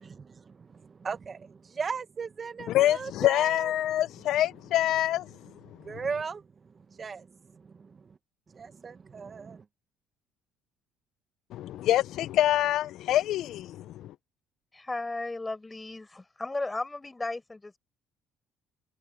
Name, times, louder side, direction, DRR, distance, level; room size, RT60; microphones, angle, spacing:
voice 1, 0.0-3.7 5.8-6.4 6.9-8.2 8.5-9.6, right 5 dB, 30° right, 1.0 m, -38 dB
voice 2, 2.7-5.3 11.5-14.1, left 13 dB, 65° left, 0.5 m, -26 dB
voice 3, 14.7-17.8, left 2 dB, 15° left, 6.3 m, -35 dB
supercardioid pair, 95°, 0 cm